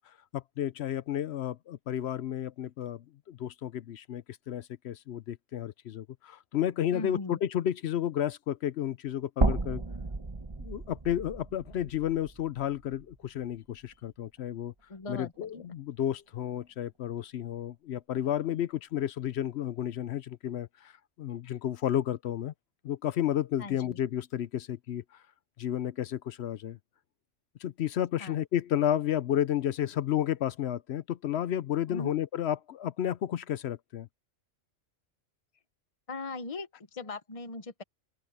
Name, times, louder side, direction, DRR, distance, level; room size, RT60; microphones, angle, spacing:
voice 1, 0.3-9.8 10.6-14.7 15.1-20.9 21.2-22.5 22.8-25.0 25.6-26.8 27.6-34.1, left 10 dB, 65° left, 0.8 m, -32 dB
voice 2, 6.9-7.4 14.9-15.7 23.6-24.0 28.2-28.4 31.9-32.1 36.1-37.8, left 3 dB, 30° left, 1.1 m, -39 dB
sound 1, 9.4-13.6 13.9-14.0 15.4-15.5, right 2 dB, 25° right, 1.0 m, -33 dB
open air
omnidirectional pair, 1.3 m